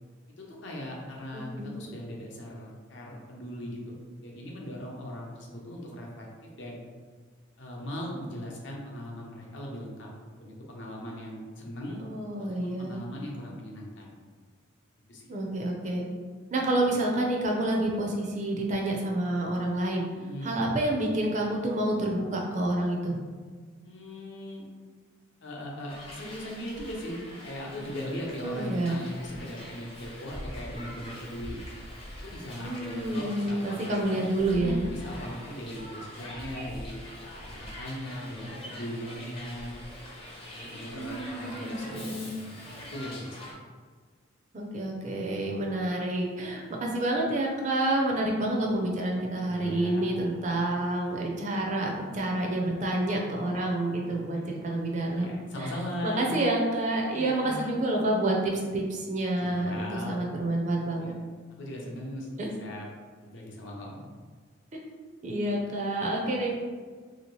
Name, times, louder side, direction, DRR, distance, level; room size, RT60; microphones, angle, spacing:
voice 1, 0.4-6.8 7.6-10.1 10.4-12.0 12.4-14.2 15.1-15.3 20.1-20.5 23.8-24.6 25.4-31.6 32.2-34.3 34.6-37.0 37.6-39.8 40.5-43.6 49.5-50.2 50.6-50.8 54.1-54.2 55.1-56.3 57.1-57.8 59.4-60.2 61.0-61.2 61.5-62.3 62.6-62.9 63.2-64.0, equal, 65° left, -2 dB, 0.7 m, -39 dB
voice 2, 1.3-1.7 12.0-13.0 15.3-16.1 16.5-20.0 20.4-23.2 28.4-29.0 32.6-34.8 41.0-42.3 44.5-55.7 56.0-61.1 62.4-62.5 65.2-66.5, right 1 dB, 35° right, -1 dB, 0.4 m, -28 dB
Hiss, 25.9-43.5, left 1 dB, 25° left, 0.5 m, -43 dB
2.9 x 2.8 x 3.0 m, 1.5 s
head